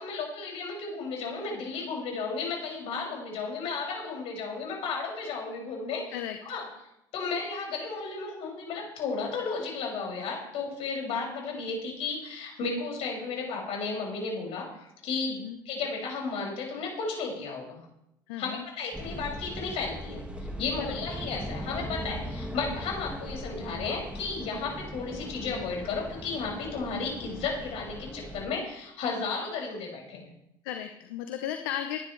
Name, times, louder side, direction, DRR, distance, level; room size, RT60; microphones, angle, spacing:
voice 1, 0.0-6.6 7.1-15.4 15.6-17.8 18.4-30.3, left 4 dB, 65° left, -1 dB, 6.7 m, -34 dB
voice 2, 18.3-18.6 20.9-21.0 30.6-32.0, left 11 dB, 80° left, 6 dB, 0.9 m, -35 dB
sound 1, 18.9-28.4, equal, 10° right, 2.1 m, -39 dB
20.5 x 10.5 x 3.4 m, 0.82 s
hypercardioid pair, 70°, 11 cm